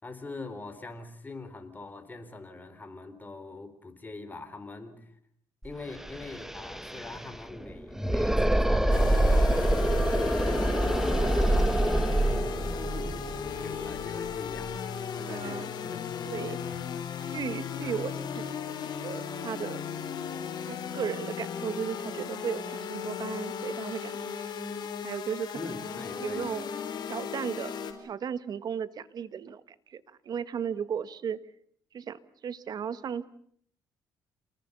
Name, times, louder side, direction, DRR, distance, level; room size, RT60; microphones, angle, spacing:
voice 1, 0.0-5.2 5.6-12.4 12.6-16.9 17.8-18.0 25.5-26.5, left 3 dB, 20° left, 7 dB, 4.4 m, -44 dB
sound 1, 5.6-5.7 5.9-14.7, right 1 dB, 5° right, 1.3 m, -26 dB
sound 2, 8.9-27.9, left 7 dB, 65° left, 4.4 m, -36 dB
voice 2, 15.3-15.7 16.2-16.6 17.2-19.8 20.6-24.5 24.8-25.6 26.2-26.7 27.1-31.4 31.9-33.3, right 7 dB, 55° right, 15 dB, 1.5 m, -36 dB
28.5 x 20.5 x 6.9 m, 0.64 s
cardioid pair, 90°, 8 cm